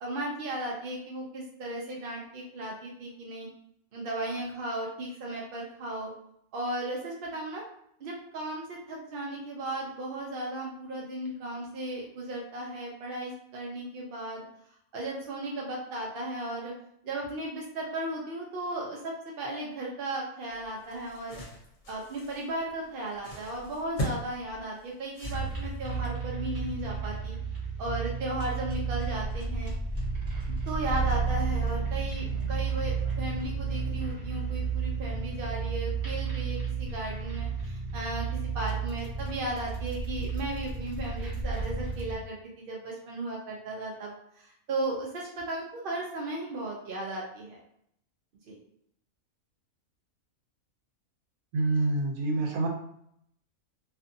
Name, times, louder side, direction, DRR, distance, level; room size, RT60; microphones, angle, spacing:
voice 1, 0.0-3.5 3.9-6.1 6.5-7.6 8.0-14.5 14.9-16.7 17.0-21.4 21.9-27.4 27.8-29.7 30.7-47.6 48.5-48.6, right 1 dB, 65° right, -2 dB, 0.5 m, -36 dB
sound 1, 20.5-25.9, equal, 60° left, 0.9 m, -40 dB
sound 2, 25.2-42.1, right 5 dB, 25° right, 0.8 m, -32 dB
voice 2, 51.5-52.7, right 2 dB, 90° right, 1 dB, 1.0 m, -27 dB
2.6 x 2.4 x 2.5 m, 0.71 s
omnidirectional pair, 1.4 m